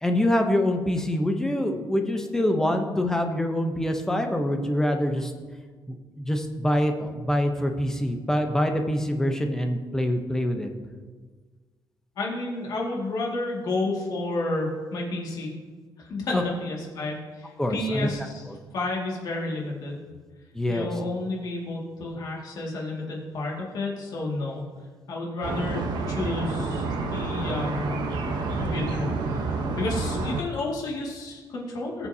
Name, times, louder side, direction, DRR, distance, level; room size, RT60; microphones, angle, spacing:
voice 1, 0.0-5.3 5.9-10.7 16.3-16.4 17.6-18.1 18.5-18.6 20.5-20.9, left 1 dB, 5° left, 4 dB, 0.8 m, -25 dB
voice 2, 12.2-15.5 16.0-18.4 18.7-20.1 20.7-24.6 25.1-28.1 28.6-29.5 29.7-32.1, left 2 dB, 55° left, -2 dB, 2.1 m, -31 dB
sound 1, 25.4-30.4, right 3 dB, 60° right, 1.0 m, -29 dB
18.5 x 7.0 x 2.8 m, 1.4 s
cardioid pair, 170°, 8 cm